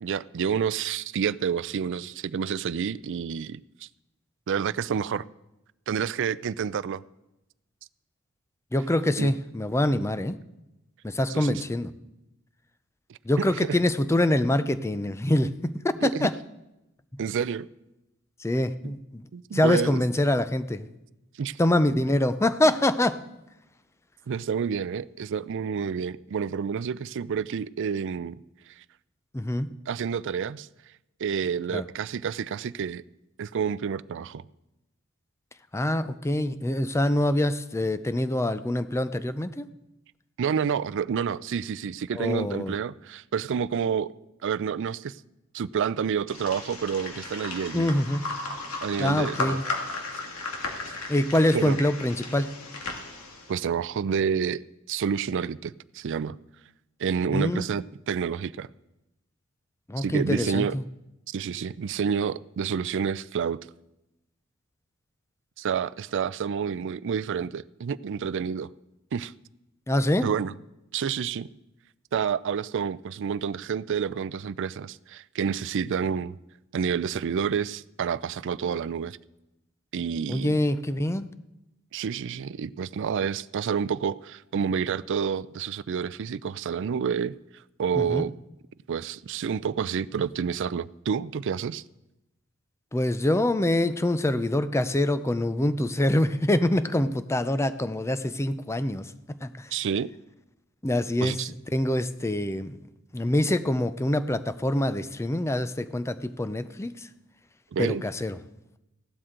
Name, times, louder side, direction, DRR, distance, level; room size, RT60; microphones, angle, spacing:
voice 1, 0.0-3.9 4.5-5.2 5.9-7.0 9.2-9.3 11.3-11.6 16.0-16.3 17.2-17.7 18.8-18.9 19.3-20.0 21.4-21.6 24.3-28.4 29.9-30.7 31.2-33.0 33.4-34.4 40.4-44.1 44.4-45.2 45.5-47.9 48.8-49.6 51.5-51.8 53.5-54.6 54.9-56.4 57.0-58.7 60.0-60.8 61.3-63.6 65.6-68.7 69.1-69.3 70.2-70.5 70.9-71.5 72.1-76.3 76.7-79.2 79.9-80.6 81.9-87.3 87.8-88.3 88.9-91.8 99.7-100.1 101.2-101.5 107.7-108.0, right 7 dB, 60° right, 18 dB, 0.4 m, -29 dB
voice 2, 8.7-10.4 11.0-11.9 13.2-16.3 18.4-19.2 19.5-20.9 21.6-23.2 29.3-29.7 31.7-31.9 35.7-39.7 42.1-42.7 47.7-48.3 49.0-49.6 51.1-52.5 57.3-57.6 59.9-60.8 69.9-70.3 80.3-81.3 87.9-88.2 92.9-99.1 99.4-99.7 100.8-101.4 101.7-102.8 103.1-107.1 107.8-108.4, left 1 dB, 15° left, 12 dB, 0.5 m, -25 dB
sound 1, 46.3-53.6, left 3 dB, 85° left, 2.1 m, -35 dB
16.0 x 12.0 x 3.8 m, 0.92 s
head